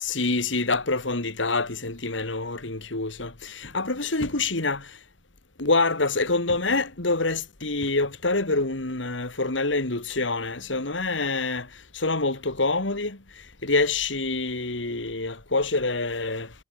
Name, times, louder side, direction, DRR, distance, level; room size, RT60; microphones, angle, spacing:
voice 1, 0.0-5.0 5.6-11.7 11.9-13.2 13.6-16.5, left 3 dB, 85° left, 2.8 m, -26 dB
head